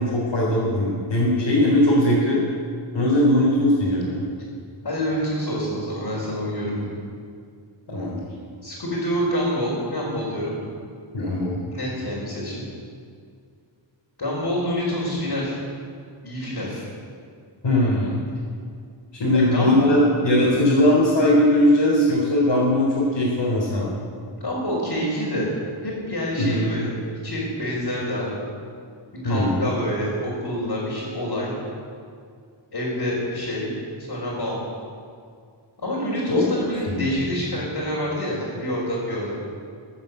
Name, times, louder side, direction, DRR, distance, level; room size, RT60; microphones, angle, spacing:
voice 1, 0.0-2.4 2.9-4.2 7.9-8.2 11.1-11.6 17.6-18.2 19.1-23.9 26.4-26.6 29.2-29.6 36.3-36.4 36.9-37.0, left 1 dB, 70° left, -7 dB, 3.9 m, -19 dB
voice 2, 4.8-7.0 8.6-10.6 11.7-12.7 14.2-15.6 16.2-16.8 19.3-20.0 24.4-25.6 25.8-26.9 27.2-28.4 29.2-31.5 32.7-33.7 34.0-34.6 35.8-39.4, equal, 55° left, -8 dB, 4.7 m, -27 dB
15.5 x 8.8 x 8.1 m, 2.2 s
wide cardioid pair, 100°, 46 cm